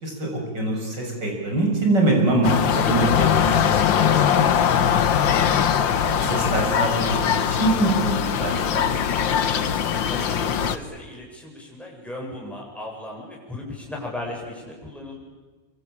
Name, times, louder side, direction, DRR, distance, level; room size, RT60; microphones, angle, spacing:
voice 1, 0.0-5.5 6.1-8.8, right 2 dB, 65° right, 0 dB, 7.0 m, -24 dB
sound 1, 2.4-10.8, left 8 dB, 80° left, 1.9 m, -21 dB
voice 2, 10.1-15.2, left 1 dB, ahead, -3 dB, 7.7 m, -36 dB
26.0 x 25.5 x 8.8 m, 1.3 s
omnidirectional pair, 2.0 m